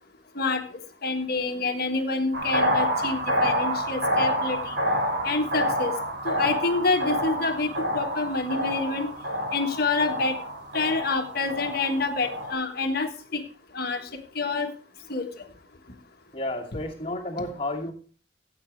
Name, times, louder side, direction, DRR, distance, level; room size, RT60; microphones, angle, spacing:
voice 1, 1.0-4.7 5.2-5.9 6.2-9.1 9.5-10.4 10.7-13.4 13.7-14.1 14.3-14.7 15.1-15.3, left 3 dB, 55° left, 5 dB, 1.4 m, -27 dB
sound 1, 2.3-12.5, equal, 80° right, 3.9 m, -28 dB
voice 2, 16.3-17.9, left 1 dB, 30° left, -2 dB, 2.3 m, -31 dB
15.5 x 8.1 x 3.3 m, 0.40 s
head